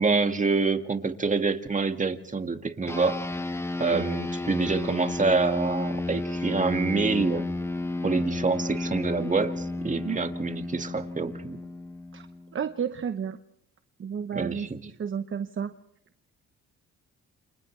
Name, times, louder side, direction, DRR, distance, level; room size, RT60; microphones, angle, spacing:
voice 1, 0.0-3.2 3.8-7.5 8.0-11.6 14.3-14.8, right 4 dB, 25° right, 6 dB, 2.0 m, -26 dB
sound 1, 2.9-12.6, left 2 dB, 10° left, 1.2 m, -32 dB
voice 2, 12.5-13.4 14.0-15.7, right 7 dB, 40° right, 9 dB, 1.0 m, -32 dB
29.5 x 27.0 x 3.3 m, 0.77 s
cardioid pair, 90°, 30 cm